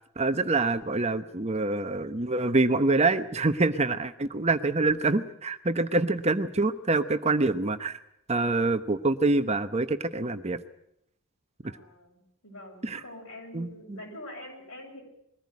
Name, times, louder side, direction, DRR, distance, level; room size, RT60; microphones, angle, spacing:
voice 1, 0.2-8.0 8.3-10.6 11.6-11.7 12.8-13.0 13.5-14.0, right 3 dB, 30° right, 10 dB, 0.9 m, -26 dB
voice 2, 11.6-15.0, left 1 dB, 65° left, 1 dB, 7.4 m, -45 dB
22.0 x 15.0 x 9.6 m, 0.79 s
head